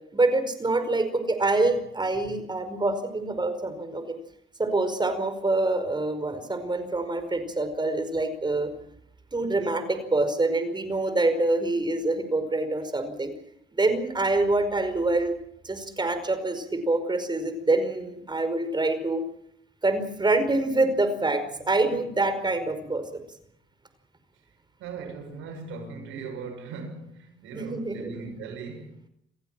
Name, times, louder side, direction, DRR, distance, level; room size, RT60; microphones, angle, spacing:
voice 1, 0.1-4.2 4.6-8.7 9.3-13.3 13.7-15.3 15.6-19.2 19.8-23.0 27.5-28.1, right 2 dB, 20° right, 5.0 m, -26 dB
voice 2, 24.8-29.0, right 4 dB, 90° right, 6.8 m, -39 dB
28.0 x 15.5 x 7.6 m
cardioid pair, 90°, 20 cm